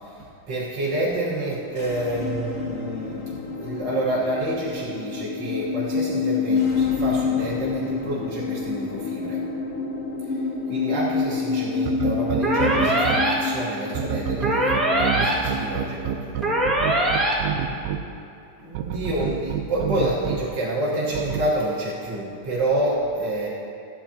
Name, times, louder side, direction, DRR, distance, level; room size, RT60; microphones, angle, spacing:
voice 1, 0.0-3.3 3.6-9.4 10.2-10.4 10.7-17.3 18.6-23.5, right 1 dB, 55° right, -8 dB, 1.2 m, -28 dB
sound 1, 1.6-17.2, left 5 dB, 70° left, 1.3 m, -28 dB
sound 2, 11.9-13.2 13.9-18.0 18.7-20.4 21.1-21.4, right 11 dB, 80° right, 1.8 m, -27 dB
sound 3, 12.4-13.3 14.4-15.3 16.4-17.3, right 1 dB, ahead, 0.3 m, -22 dB
14.0 x 11.0 x 2.8 m, 2.6 s
omnidirectional pair, 4.0 m